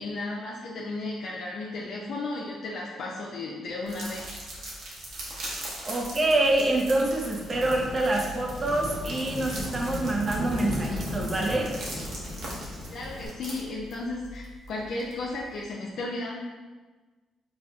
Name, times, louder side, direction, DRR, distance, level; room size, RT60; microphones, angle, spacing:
voice 1, 0.0-4.3 12.9-16.4, left 2 dB, 70° left, -4 dB, 0.5 m, -34 dB
sound 1, 3.9-15.6, right 1 dB, 75° right, 1.0 m, -40 dB
Thunderstorm / Rain, 5.6-13.3, left 1 dB, 10° right, 1.3 m, -37 dB
voice 2, 5.8-11.7, right 2 dB, 30° right, 0 dB, 0.6 m, -26 dB
5.2 x 2.4 x 2.3 m, 1.3 s
cardioid pair, 90°, 0 cm